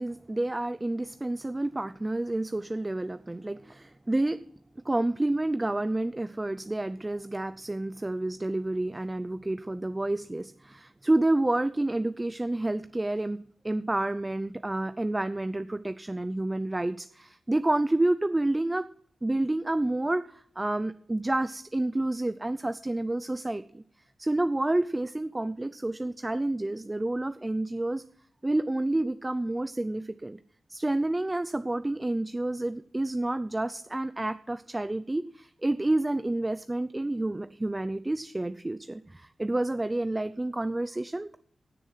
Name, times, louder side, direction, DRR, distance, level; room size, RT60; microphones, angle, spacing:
voice 1, 0.0-4.4 4.8-18.9 19.2-23.8 24.2-28.0 28.4-30.4 30.7-41.4, right 2 dB, 20° right, 12 dB, 0.5 m, -29 dB
15.0 x 7.0 x 5.7 m, 0.62 s
cardioid pair, 70°, 0 cm